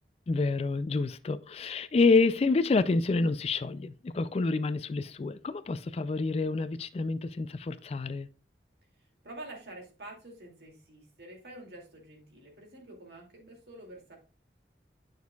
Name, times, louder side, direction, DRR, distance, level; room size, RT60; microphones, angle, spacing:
voice 1, 0.3-8.3, left 3 dB, 35° left, 0.3 m, -28 dB
voice 2, 9.2-14.2, right 1 dB, 65° right, 2.5 m, -47 dB
9.4 x 6.2 x 2.3 m
head